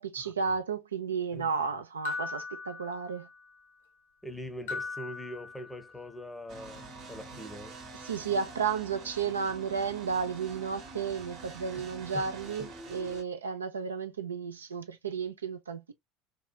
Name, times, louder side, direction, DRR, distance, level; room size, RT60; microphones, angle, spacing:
voice 1, 0.0-3.3 8.0-15.9, right 6 dB, 80° right, 0.3 m, -33 dB
sound 1, 2.0-3.5 4.7-6.1, left 4 dB, 70° left, 0.7 m, -39 dB
voice 2, 4.2-7.8 11.7-12.3, left 1 dB, 5° left, 0.6 m, -43 dB
sound 2, 6.5-13.2, right 2 dB, 50° right, 0.9 m, -46 dB
2.8 x 2.3 x 2.2 m
figure-of-eight pair, 65°, 0 cm